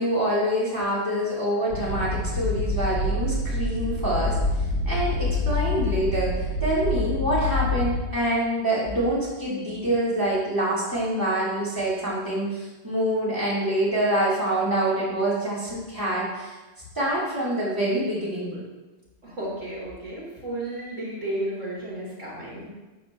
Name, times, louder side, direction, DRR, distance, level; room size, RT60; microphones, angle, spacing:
voice 1, 0.0-4.4 4.8-6.3 6.6-16.5 16.9-18.6, right 1 dB, 15° right, -9 dB, 3.3 m, -26 dB
sound 1, 1.7-8.0, left 2 dB, 90° left, 1.7 m, -26 dB
voice 2, 19.2-22.7, right 1 dB, 70° right, -6 dB, 3.8 m, -33 dB
12.5 x 8.3 x 3.0 m, 1.2 s
omnidirectional pair, 1.3 m